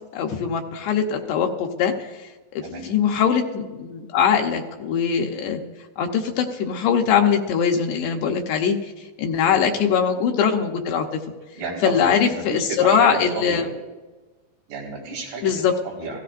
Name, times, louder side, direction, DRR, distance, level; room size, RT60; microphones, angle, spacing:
voice 1, 0.1-2.1 2.5-5.6 6.0-11.2 11.8-13.6 15.4-15.7, left 7 dB, 75° left, 3 dB, 2.7 m, -22 dB
voice 2, 2.6-2.9 9.4-9.7 11.5-13.7 14.7-16.2, right 3 dB, 85° right, -3 dB, 6.8 m, -32 dB
28.5 x 17.0 x 2.5 m, 1.2 s
omnidirectional pair, 5.4 m